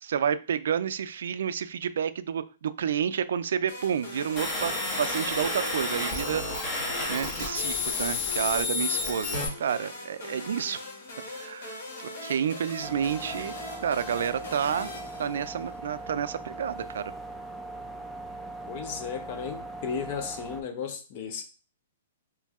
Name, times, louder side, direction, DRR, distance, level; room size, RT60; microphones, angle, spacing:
voice 1, 0.0-6.4 7.1-10.8 11.3-11.8 12.2-13.6 13.8-14.9 15.2-17.1, right 8 dB, 75° right, 0.3 m, -30 dB
sound 1, 3.7-15.9, left 2 dB, 60° left, 1.4 m, -41 dB
sound 2, 4.4-9.5, left 3 dB, 25° left, 1.3 m, -30 dB
sound 3, 12.8-20.6, right 2 dB, 5° left, 0.4 m, -40 dB
voice 2, 18.7-21.4, left 7 dB, 40° left, 0.7 m, -35 dB
3.1 x 2.7 x 3.5 m
hypercardioid pair, 155°, 0 cm